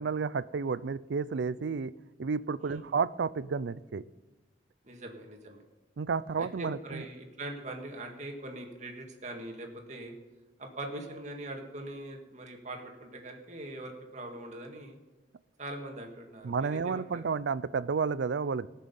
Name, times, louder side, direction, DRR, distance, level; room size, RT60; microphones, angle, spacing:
voice 1, 0.0-1.9 2.2-4.0 6.0-7.0 16.4-18.7, right 5 dB, 80° right, 17 dB, 0.4 m, -31 dB
voice 2, 4.8-5.6 6.4-10.1 10.6-15.0 15.6-17.2, right 1 dB, 40° right, 2 dB, 1.8 m, -42 dB
19.5 x 6.6 x 5.4 m, 1.2 s
head